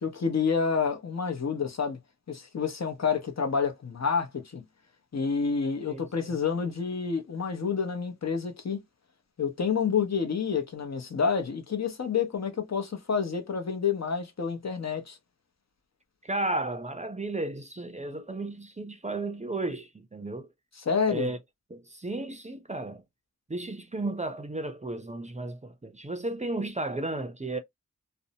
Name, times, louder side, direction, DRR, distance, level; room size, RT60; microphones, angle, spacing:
voice 1, 0.0-2.0 2.3-4.6 5.1-8.8 9.4-15.2 20.8-21.3, left 6 dB, 55° left, 0.8 m, -28 dB
voice 2, 5.9-6.3 16.2-20.5 21.1-21.4 21.7-23.0 23.5-27.6, right 2 dB, 20° right, 0.5 m, -34 dB
2.6 x 2.1 x 2.7 m
wide cardioid pair, 60°, 31 cm